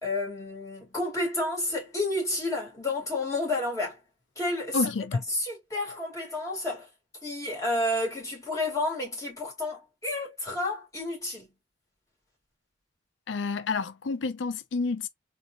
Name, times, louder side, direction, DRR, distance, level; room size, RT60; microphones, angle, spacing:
voice 1, 0.0-4.0 4.4-6.9 7.2-11.5, left 2 dB, 20° left, 2.5 m, -30 dB
voice 2, 4.7-5.2 13.3-15.1, left 4 dB, 90° left, 0.5 m, -29 dB
4.0 x 2.7 x 2.5 m
head